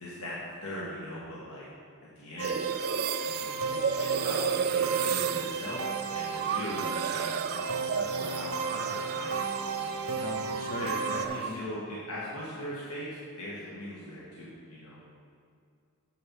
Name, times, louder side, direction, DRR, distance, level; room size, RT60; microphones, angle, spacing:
voice 1, 0.0-1.7 2.1-2.6 3.2-5.9 6.1-10.2 10.8-15.0, left 1 dB, 85° left, -7 dB, 1.8 m, -40 dB
sound 1, 2.4-9.8 10.1-11.6, right 7 dB, 45° right, 0.3 m, -33 dB
sound 2, 2.4-11.3, right 4 dB, 85° right, 0.8 m, -34 dB
voice 2, 10.2-11.6, left 1 dB, 45° left, 4 dB, 0.8 m, -40 dB
7.9 x 6.6 x 5.6 m, 2.3 s
head